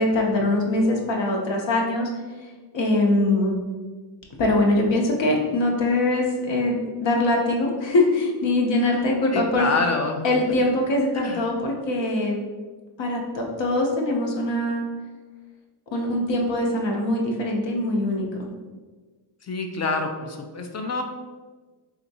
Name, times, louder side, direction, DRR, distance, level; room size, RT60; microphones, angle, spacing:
voice 1, 0.0-2.1 2.7-3.5 4.4-9.7 10.2-12.5 13.0-14.8 15.9-18.5, left 2 dB, 65° left, 0 dB, 0.8 m, -22 dB
voice 2, 9.3-10.2 11.1-11.4 19.5-21.0, left 3 dB, 35° left, 4 dB, 0.4 m, -26 dB
3.5 x 2.8 x 2.7 m, 1.3 s
cardioid pair, 75°, 47 cm